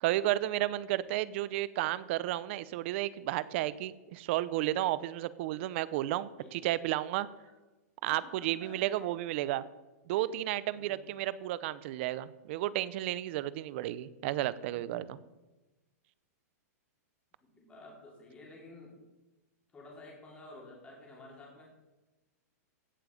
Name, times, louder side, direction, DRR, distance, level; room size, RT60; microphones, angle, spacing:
voice 1, 0.0-7.3 8.0-9.6 10.1-15.2, right 15 dB, 45° right, 18 dB, 0.6 m, -32 dB
voice 2, 0.9-1.2 6.4-6.8 7.4-7.5 8.0-9.0 10.1-10.3 10.7-11.1 14.7-15.1 17.6-18.9 19.7-21.6, left 2 dB, 15° left, -3 dB, 4.4 m, -52 dB
16.0 x 6.9 x 5.2 m, 1.1 s
hypercardioid pair, 150°, 9 cm